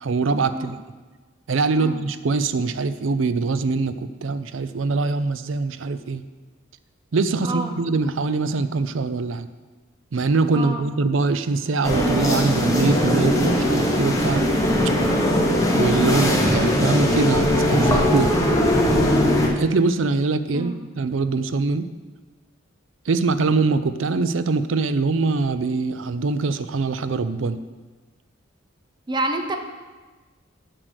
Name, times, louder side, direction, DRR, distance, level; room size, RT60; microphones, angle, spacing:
voice 1, 0.0-0.8 1.5-6.2 7.1-9.5 10.1-14.4 15.8-18.3 19.6-21.8 23.1-27.6, right 3 dB, 75° right, 12 dB, 0.5 m, -23 dB
voice 2, 7.4-7.7 10.5-10.9 15.4-15.7 20.5-20.8 29.1-29.6, right 2 dB, 25° right, 5 dB, 0.8 m, -28 dB
sound 1, 11.8-19.5, equal, 15° left, 1.2 m, -20 dB
7.5 x 6.7 x 6.3 m, 1.3 s
head